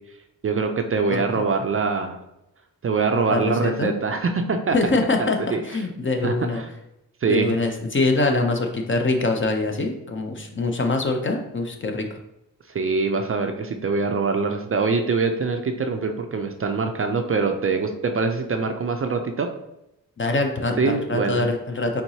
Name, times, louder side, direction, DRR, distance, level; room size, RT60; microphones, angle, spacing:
voice 1, 0.4-2.2 2.8-4.8 5.2-5.6 6.2-6.7 7.2-7.6 12.7-19.5 20.8-21.5, right 4 dB, 40° right, 5 dB, 0.4 m, -24 dB
voice 2, 1.1-1.4 3.3-3.9 4.7-6.6 7.3-12.1 20.2-22.0, left 2 dB, 35° left, 3 dB, 0.5 m, -24 dB
4.5 x 3.8 x 2.7 m, 0.86 s
wide cardioid pair, 105°, 37 cm